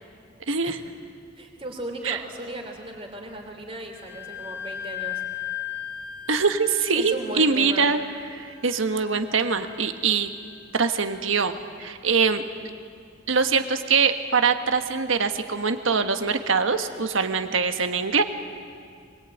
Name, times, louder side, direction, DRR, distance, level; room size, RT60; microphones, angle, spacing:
voice 1, 0.5-0.8 2.0-2.2 6.3-8.0 8.3-10.3 10.7-12.4 13.3-18.2, right 5 dB, 70° right, 8 dB, 1.4 m, -23 dB
voice 2, 1.4-5.2 7.0-7.9, right 1 dB, 30° right, 3 dB, 3.3 m, -36 dB
Wind instrument woodwind instrument, 3.9-11.4, left 10 dB, 45° left, 1.8 m, -38 dB
22.5 x 21.5 x 9.2 m, 2.2 s
head